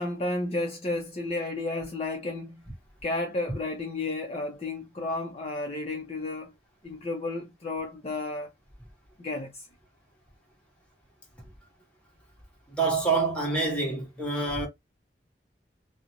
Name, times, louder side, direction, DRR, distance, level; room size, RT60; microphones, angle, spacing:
voice 1, 0.0-2.6 3.0-6.5 6.8-8.5 9.2-9.7, left 2 dB, 35° left, 0.5 m, -32 dB
voice 2, 12.8-14.7, right 3 dB, 5° left, 0.9 m, -26 dB
2.4 x 2.0 x 2.8 m
head